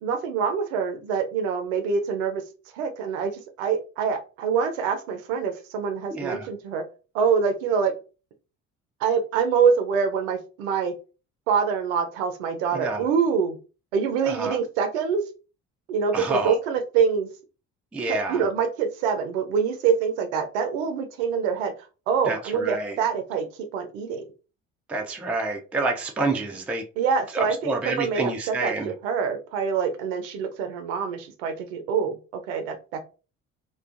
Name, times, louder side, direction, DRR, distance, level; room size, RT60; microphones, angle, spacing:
voice 1, 0.0-2.4 2.7-3.3 3.6-6.8 7.1-7.9 9.0-10.9 11.5-13.6 13.9-15.2 15.9-17.3 18.1-21.7 22.1-23.5 23.7-24.2 27.0-33.0, right 6 dB, 70° right, 0.6 m, -25 dB
voice 2, 6.1-6.5 12.7-13.0 14.2-14.6 16.1-16.6 17.9-18.4 22.3-23.0 24.9-26.8 27.3-28.9, right 3 dB, 5° right, 0.3 m, -28 dB
2.4 x 2.3 x 2.4 m
figure-of-eight pair, 50°, 41 cm